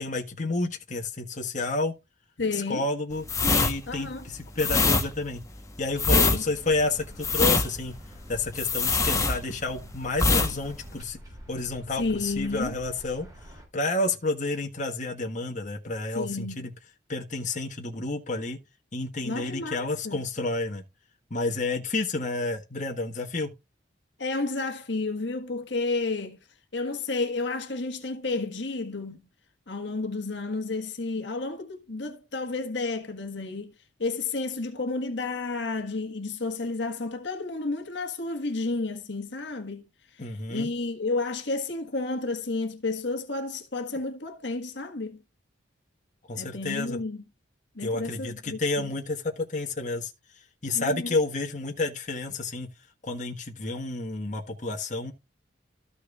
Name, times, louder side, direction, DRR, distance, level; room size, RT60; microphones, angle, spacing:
voice 1, 0.0-1.9 2.7-5.4 5.8-6.2 6.5-7.9 8.3-11.2 11.5-13.3 13.7-16.7 17.1-18.6 18.9-20.8 21.3-23.5 40.2-40.7 46.3-47.0 47.8-50.1 50.6-52.7 53.0-55.1, left 2 dB, 40° left, 1.6 m, -30 dB
voice 2, 2.4-2.8 3.9-4.2 6.1-6.4 12.0-12.8 16.1-16.7 19.2-20.2 24.2-26.4 26.7-29.3 29.7-33.7 34.0-39.9 40.5-45.2 46.3-47.2 47.7-48.9 50.7-51.1, left 3 dB, 70° left, 1.6 m, -31 dB
sound 1, 3.2-9.8 10.1-10.5 10.8-11.0, left 3 dB, 15° left, 1.2 m, -23 dB
sound 2, 6.6-13.7, equal, 20° right, 5.5 m, -47 dB
14.0 x 6.2 x 2.5 m
head